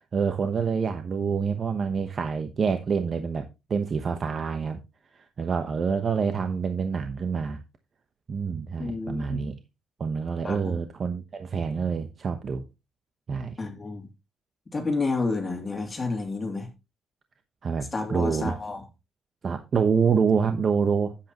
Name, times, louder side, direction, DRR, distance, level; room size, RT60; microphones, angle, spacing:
voice 1, 0.1-4.8 5.1-7.6 8.3-9.6 10.0-12.6 13.3-13.6 17.6-18.5 19.4-21.2, right 6 dB, 45° right, 1.0 m, -27 dB
voice 2, 8.8-9.4 10.4-10.8 13.6-14.1 14.7-16.7 17.9-18.9, left 3 dB, 25° left, 2.8 m, -30 dB
10.0 x 8.6 x 3.0 m
cardioid pair, 90°, 0 cm